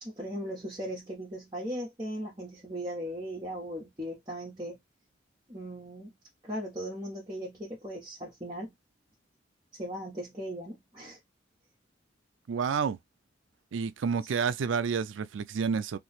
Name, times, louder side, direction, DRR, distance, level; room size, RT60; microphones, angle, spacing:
voice 1, 0.0-4.8 5.5-6.1 6.4-8.7 9.8-11.2 14.2-14.3, equal, 25° right, 1.2 m, -38 dB
voice 2, 12.5-13.0 13.7-16.0, right 6 dB, 80° right, 0.4 m, -29 dB
3.0 x 2.4 x 4.1 m
head